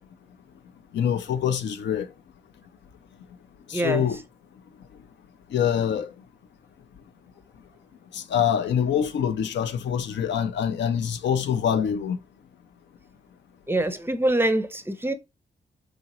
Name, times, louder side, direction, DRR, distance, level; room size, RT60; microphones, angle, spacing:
voice 1, 0.9-2.1 3.7-4.2 5.5-6.1 8.1-12.2, left 8 dB, 75° left, 0.4 m, -25 dB
voice 2, 3.7-4.1 13.7-15.1, right 1 dB, 10° right, 0.5 m, -24 dB
2.9 x 2.8 x 2.8 m
supercardioid pair, 45°, 19 cm